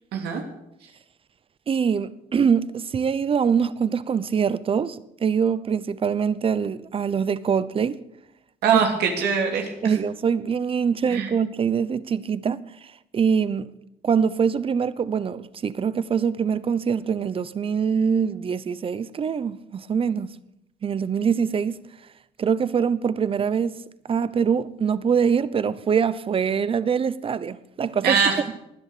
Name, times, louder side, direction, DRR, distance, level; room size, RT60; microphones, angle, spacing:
voice 1, 0.1-0.4 8.6-9.7 11.1-11.3 28.0-28.6, right 6 dB, 75° right, 2.9 m, -22 dB
voice 2, 1.7-8.0 8.7-8.8 9.8-12.6 13.1-13.7 14.0-20.3 20.8-21.8 22.4-23.8 24.1-28.2, right 6 dB, 35° right, 0.9 m, -24 dB
19.5 x 10.5 x 6.8 m
cardioid pair, 110°, 17 cm